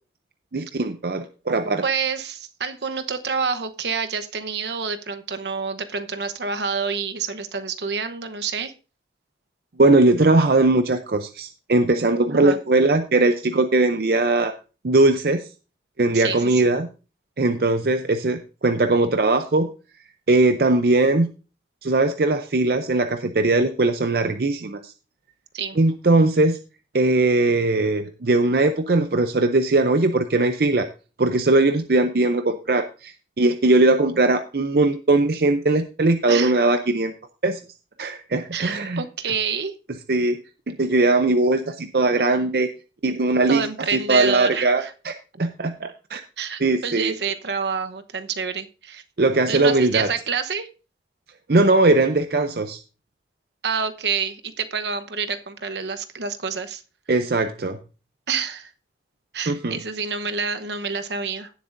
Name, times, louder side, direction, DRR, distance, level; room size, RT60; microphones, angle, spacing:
voice 1, 0.5-1.8 9.8-14.5 14.8-15.5 16.0-16.9 17.4-19.7 20.3-21.3 21.8-24.9 25.8-26.6 26.9-30.9 31.2-37.1 37.4-37.6 38.0-39.0 40.1-40.4 40.7-42.7 43.0-43.6 43.9-46.2 46.6-47.1 49.2-50.1 51.5-52.8 57.1-57.8 59.5-59.8, right 2 dB, 60° right, 0.6 m, -20 dB
voice 2, 1.8-8.7 12.3-12.6 16.1-16.6 25.5-25.8 36.3-36.6 38.5-39.8 43.5-44.9 46.4-49.0 49.5-50.7 53.6-56.8 58.3-58.7 59.3-61.5, right 5 dB, 80° right, 1.0 m, -28 dB
17.0 x 7.4 x 2.6 m
head